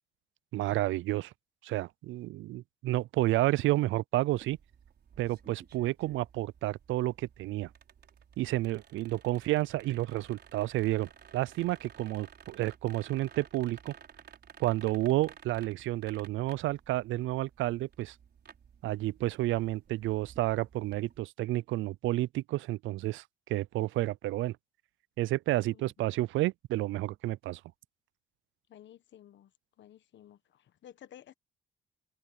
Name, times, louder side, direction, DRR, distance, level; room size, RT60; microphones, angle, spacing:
voice 1, 0.5-1.3 1.6-4.6 5.2-7.7 8.4-13.9 14.6-18.1 18.8-23.2 23.5-24.6 25.2-27.6, right 16 dB, 80° right, 0.4 m, -30 dB
sound 1, 4.3-21.2, right 7 dB, 55° right, 4.9 m, -55 dB
voice 2, 28.7-29.5 29.8-31.3, left 11 dB, 65° left, 1.3 m, -54 dB
cardioid pair, 90°, 20 cm